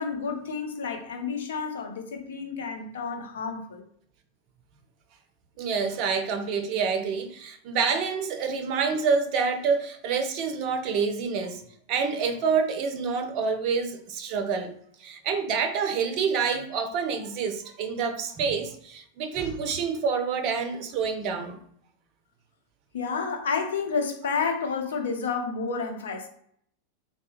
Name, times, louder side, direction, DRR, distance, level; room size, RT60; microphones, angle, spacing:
voice 1, 0.0-3.8 22.9-26.3, left 5 dB, 65° left, 0.5 m, -30 dB
voice 2, 5.6-11.6 11.9-14.7 15.0-21.6, right 5 dB, 40° right, 0.4 m, -27 dB
3.2 x 2.1 x 2.9 m
figure-of-eight pair, 90°, 0 cm